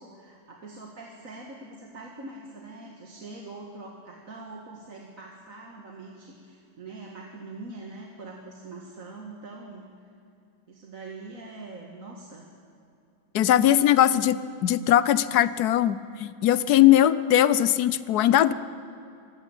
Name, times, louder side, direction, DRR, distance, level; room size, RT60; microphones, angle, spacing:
voice 1, 0.0-9.9 10.7-12.4 13.9-14.3, right 2 dB, 60° right, 0 dB, 2.2 m, -43 dB
voice 2, 13.3-14.4 14.6-18.5, left 12 dB, 90° left, 16 dB, 1.3 m, -20 dB
25.5 x 15.0 x 9.0 m, 2.6 s
omnidirectional pair, 1.6 m